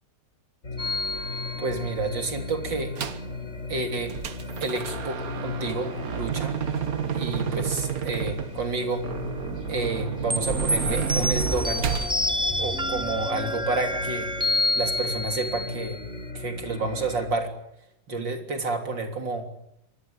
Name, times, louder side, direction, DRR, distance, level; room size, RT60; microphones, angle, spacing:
sound 1, 0.6-17.3, left 3 dB, 45° left, 4.4 m, -37 dB
sound 2, 0.8-2.3 10.3-16.0, left 1 dB, 5° right, 1.2 m, -28 dB
voice 1, 1.6-3.0 3.7-4.2 4.6-6.6 7.1-9.1 9.7-11.9 12.6-14.3 14.8-16.1 16.3-17.5 18.1-19.5, right 3 dB, 85° right, 5 dB, 4.0 m, -30 dB
sound 3, 3.0-3.3 3.8-12.1, right 8 dB, 55° right, 1.6 m, -31 dB
25.0 x 21.0 x 8.7 m, 0.78 s
omnidirectional pair, 1.9 m